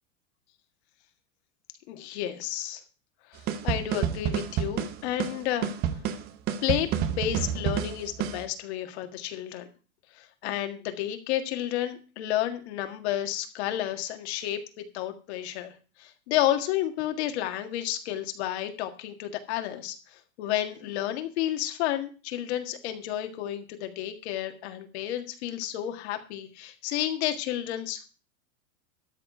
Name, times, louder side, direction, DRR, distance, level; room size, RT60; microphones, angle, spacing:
voice 1, 1.9-2.8 3.3-5.7 6.6-9.7 10.2-15.7 16.0-28.1, left 12 dB, 50° left, 7 dB, 1.8 m, -31 dB
sound 1, 3.5-8.4, right 9 dB, 25° right, 0.7 m, -29 dB
13.0 x 4.4 x 8.3 m, 0.36 s
supercardioid pair, 160°, 42 cm